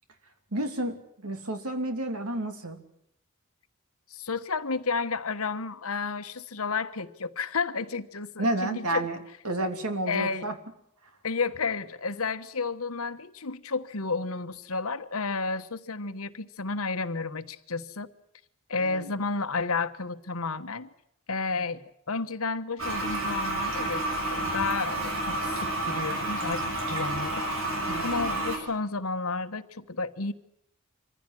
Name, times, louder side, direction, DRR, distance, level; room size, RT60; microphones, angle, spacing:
voice 1, 0.5-2.8 8.4-9.2 9.4-10.6 18.8-19.1 27.9-28.3, right 1 dB, 85° right, 7 dB, 3.0 m, -31 dB
voice 2, 4.1-9.0 10.1-10.5 11.2-18.1 18.7-20.9 21.3-27.7 28.0-30.3, left 4 dB, 75° left, 11 dB, 1.3 m, -31 dB
Toilet flush, 22.8-28.6, right 2 dB, 70° right, 6.3 m, -30 dB
25.0 x 15.5 x 9.9 m, 0.76 s
head